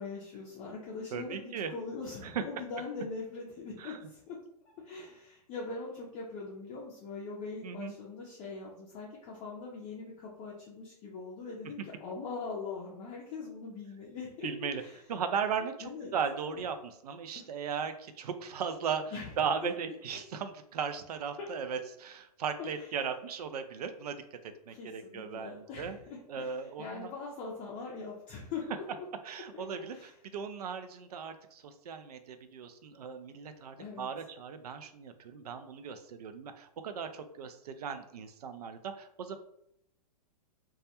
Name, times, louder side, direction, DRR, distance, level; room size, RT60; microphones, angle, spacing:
voice 1, 0.0-4.4 4.8-15.0 15.8-16.2 16.5-16.6 17.3-17.4 19.1-19.3 19.6-19.7 21.4-21.5 22.6-22.9 24.7-29.1 29.5-30.1 33.8-34.1, left 4 dB, 30° left, -4 dB, 0.5 m, -42 dB
voice 2, 1.1-1.7 2.2-2.4 3.8-4.0 7.6-7.9 14.4-14.8 15.1-26.0 26.3-27.1 29.2-30.0 30.3-39.4, right 6 dB, 70° right, 9 dB, 0.4 m, -37 dB
2.3 x 2.1 x 2.8 m, 0.76 s
hypercardioid pair, 120°, 21 cm